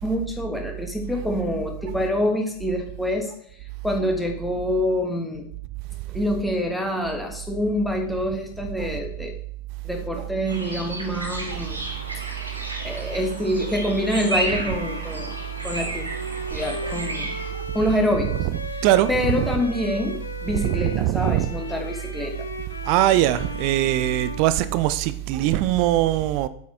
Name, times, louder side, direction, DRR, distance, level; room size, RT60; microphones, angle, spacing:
voice 1, 0.0-3.3 3.8-5.4 6.1-9.3 9.8-11.8 12.8-15.3 15.6-16.0 16.5-17.3 17.7-18.4 19.1-22.3, left 1 dB, 5° left, 1.6 m, -26 dB
sound 1, 10.5-17.5, right 1 dB, 80° right, 1.4 m, -33 dB
Bowed string instrument, 14.2-25.2, left 2 dB, 80° left, 0.7 m, -37 dB
voice 2, 18.2-19.5 19.9-20.1 20.5-21.5 22.8-26.5, right 14 dB, 45° right, 0.4 m, -22 dB
8.3 x 6.4 x 3.5 m
figure-of-eight pair, 90°, 0 cm